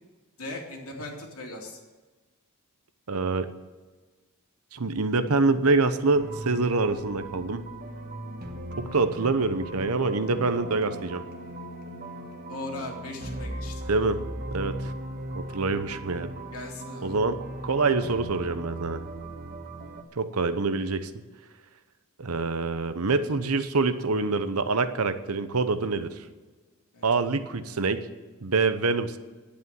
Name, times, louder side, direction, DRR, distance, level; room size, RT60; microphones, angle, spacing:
voice 1, 0.4-1.8 12.5-13.8 16.5-17.2 26.9-27.1, left 2 dB, 90° left, 1 dB, 2.7 m, -38 dB
voice 2, 3.1-3.5 4.7-7.6 8.8-11.2 13.9-14.2 14.5-14.9 15.3-16.3 17.0-19.0 20.2-21.1 22.2-26.1 27.0-28.0 28.4-29.2, right 3 dB, 90° right, 11 dB, 0.9 m, -26 dB
sound 1, 6.1-20.0, right 1 dB, 45° right, 1.4 m, -38 dB
10.5 x 8.5 x 9.3 m, 1.3 s
head